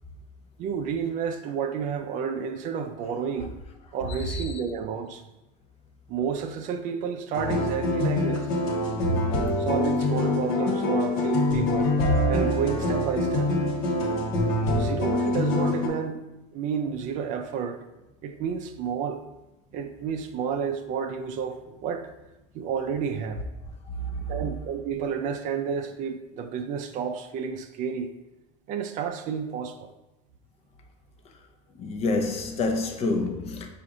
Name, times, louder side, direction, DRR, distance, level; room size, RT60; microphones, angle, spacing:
voice 1, 0.6-3.5 3.9-5.2 6.1-8.5 9.6-12.0 12.3-13.5 14.7-16.2 16.5-17.8 18.2-19.2 19.7-22.1 22.5-23.4 24.3-28.1 28.7-29.9, right 7 dB, 50° right, 0.4 m, -30 dB
voice 2, 4.1-4.6 24.0-24.3 31.8-33.7, left 2 dB, 35° left, 0.6 m, -28 dB
sound 1, 7.3-15.9, left 1 dB, 70° left, 1.0 m, -25 dB
4.7 x 2.5 x 3.7 m
supercardioid pair, 110°, 17 cm